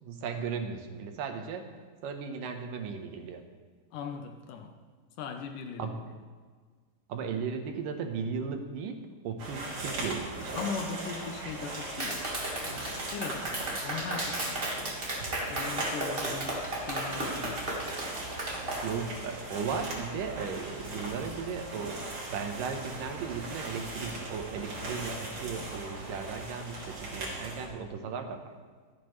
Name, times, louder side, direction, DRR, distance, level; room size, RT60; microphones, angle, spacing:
voice 1, 0.0-3.4 5.8-6.0 7.1-10.6 18.8-22.0 22.3-28.4, right 6 dB, 85° right, 5 dB, 2.7 m, -36 dB
voice 2, 3.9-4.7 5.2-6.0 10.6-12.3 12.6-15.1 15.5-17.8, left 5 dB, 80° left, 5 dB, 2.4 m, -39 dB
sound 1, 9.4-27.7, right 2 dB, 55° right, 3.7 m, -39 dB
Clapping, 12.0-18.8, right 1 dB, 30° right, 0.9 m, -34 dB
25.0 x 8.4 x 3.2 m, 1.6 s
omnidirectional pair, 3.7 m